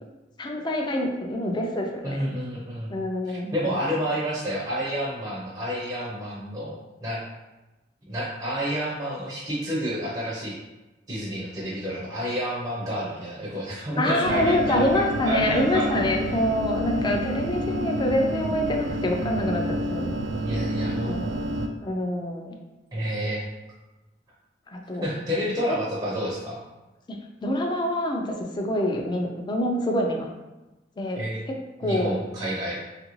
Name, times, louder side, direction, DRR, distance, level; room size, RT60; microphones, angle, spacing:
voice 1, 0.4-1.9 2.2-2.3 2.9-3.8 14.0-19.6 19.9-20.1 21.0-21.4 21.8-22.6 24.7-25.1 27.1-30.3 31.0-31.2 31.8-32.2, left 1 dB, 25° left, 2 dB, 0.4 m, -26 dB
voice 2, 2.0-2.9 3.2-7.2 8.1-10.6 11.1-16.1 17.0-17.3 20.4-21.2 22.9-23.4 25.0-26.6 31.1-31.4 31.8-32.8, equal, 25° right, -6 dB, 0.5 m, -30 dB
sound 1, 14.2-21.7, right 1 dB, 80° right, 0.3 m, -29 dB
3.0 x 2.5 x 3.0 m, 1.1 s
head